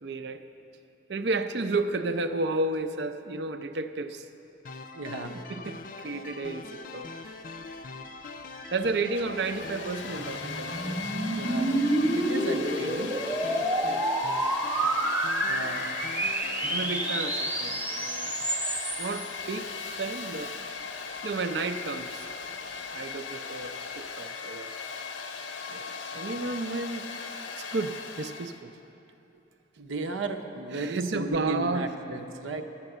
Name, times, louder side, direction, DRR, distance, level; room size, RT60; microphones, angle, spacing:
voice 1, 0.0-0.4 1.1-4.3 5.5-6.7 6.9-7.1 8.6-11.2 13.7-14.3 16.7-18.5 19.0-20.5 21.2-22.3 22.9-24.7 25.7-27.0 27.6-28.7 30.7-31.9, right 3 dB, 60° right, 9 dB, 0.5 m, -32 dB
sound 1, 4.6-17.4, left 3 dB, 45° left, 0.5 m, -42 dB
voice 2, 4.9-5.4 11.3-11.9 12.2-13.2 15.5-16.0 29.8-32.6, right 2 dB, 85° right, 6 dB, 0.8 m, -34 dB
Domestic sounds home sounds, 9.0-28.6, left 5 dB, 75° left, 0.7 m, -38 dB
sound 2, 9.5-19.2, right 1 dB, 10° right, 0.5 m, -29 dB
11.5 x 7.3 x 7.8 m, 2.9 s
head